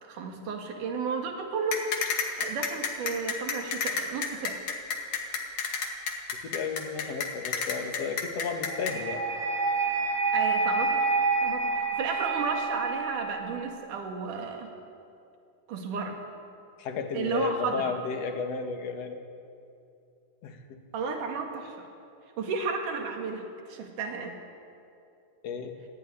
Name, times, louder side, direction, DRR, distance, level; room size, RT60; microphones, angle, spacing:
voice 1, 0.0-1.9 2.4-4.6 10.3-14.7 15.7-16.2 17.1-17.9 20.9-21.9 22.4-24.4, right 5 dB, 85° right, 3 dB, 3.6 m, -33 dB
sound 1, 1.7-8.9, left 6 dB, 85° left, 3.6 m, -30 dB
voice 2, 6.4-9.3 16.8-19.2 20.4-20.8 25.4-25.8, left 5 dB, 60° left, 5 dB, 2.6 m, -33 dB
sound 2, 8.6-13.7, right 4 dB, 15° right, 3.8 m, -28 dB
24.5 x 15.0 x 9.8 m, 2.6 s
omnidirectional pair, 3.5 m